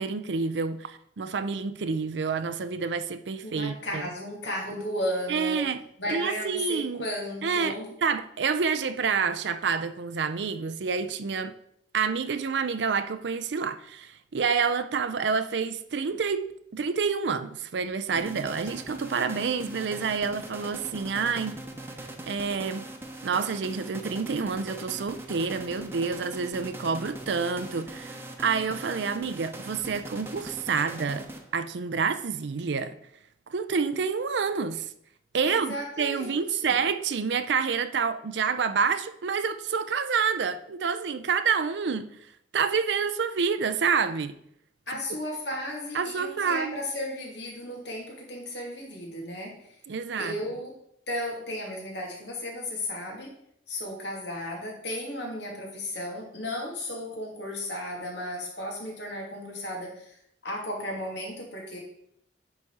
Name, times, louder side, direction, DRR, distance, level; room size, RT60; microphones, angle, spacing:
voice 1, 0.0-4.0 5.3-5.8 6.1-7.1 7.4-7.8 8.0-11.5 11.9-16.4 16.7-21.6 22.3-22.9 23.2-31.3 31.5-33.0 33.5-34.9 35.3-42.2 42.5-44.4 45.9-46.8 49.9-50.3, right 5 dB, 75° right, 11 dB, 0.5 m, -28 dB
voice 2, 3.4-5.6 6.0-7.9 35.4-36.8 44.9-49.8 50.2-50.8 51.1-53.3 53.7-60.2 60.4-61.8, left 1 dB, 75° left, -1 dB, 2.5 m, -34 dB
sound 1, 18.2-31.8, right 1 dB, 15° right, 0.9 m, -41 dB
10.0 x 4.2 x 4.8 m, 0.72 s
head